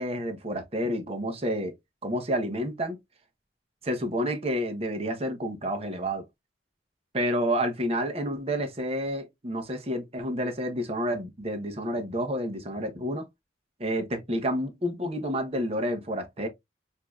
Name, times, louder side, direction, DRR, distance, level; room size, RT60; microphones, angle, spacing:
voice 1, 0.0-1.7 2.0-3.0 3.8-6.2 7.1-13.3 13.8-16.5, equal, 35° right, 0.9 m, -29 dB
6.6 x 2.7 x 2.3 m
head